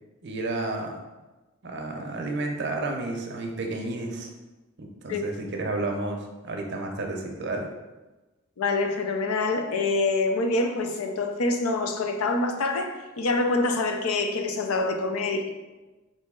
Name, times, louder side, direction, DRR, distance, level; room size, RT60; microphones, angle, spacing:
voice 1, 0.2-1.0 1.6-4.3 4.8-7.7, right 2 dB, 55° right, 2 dB, 0.6 m, -31 dB
voice 2, 8.6-15.5, left 3 dB, 90° left, 6 dB, 0.5 m, -26 dB
4.0 x 2.6 x 3.6 m, 1.1 s
head